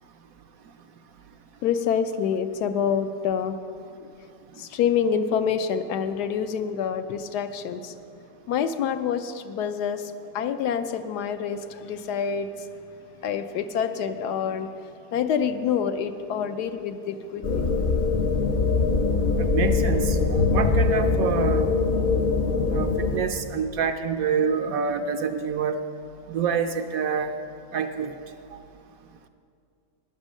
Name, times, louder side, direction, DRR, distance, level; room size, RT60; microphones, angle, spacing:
voice 1, 1.6-3.6 4.6-8.0 8.5-12.5 13.2-14.7 15.1-17.6, left 7 dB, 80° left, 9 dB, 1.2 m, -27 dB
sound 1, 17.4-23.2, left 4 dB, 65° left, 0.5 m, -22 dB
voice 2, 19.4-20.2 20.5-21.7 22.7-25.8 26.3-27.3 27.7-28.2 28.5-28.6, right 6 dB, 70° right, 7 dB, 0.9 m, -26 dB
11.5 x 9.7 x 6.3 m, 2.4 s
omnidirectional pair, 1.8 m